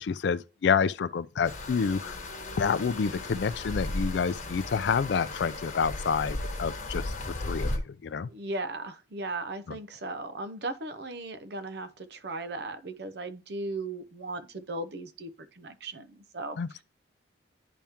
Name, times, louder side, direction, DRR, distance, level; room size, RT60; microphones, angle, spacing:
voice 1, 0.0-2.2 2.6-8.3 9.7-9.8 16.6-16.8, left 6 dB, 65° left, 0.4 m, -28 dB
sound 1, 1.4-7.8, left 2 dB, 40° left, 1.2 m, -35 dB
voice 2, 8.3-15.3 15.6-16.6, right 2 dB, 60° right, 0.7 m, -37 dB
10.0 x 3.5 x 2.9 m
head